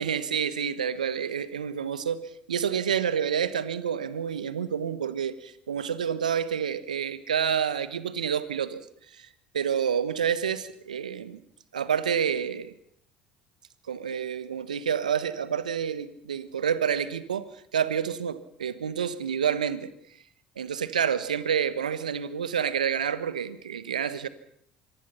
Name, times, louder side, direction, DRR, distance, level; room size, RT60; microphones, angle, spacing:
voice 1, 0.0-8.8 9.1-9.3 9.5-11.4 11.7-12.7 13.9-19.9 20.6-24.3, right 8 dB, 85° right, 15 dB, 1.3 m, -28 dB
26.5 x 24.0 x 5.7 m, 0.65 s
hypercardioid pair, 60°, 4 cm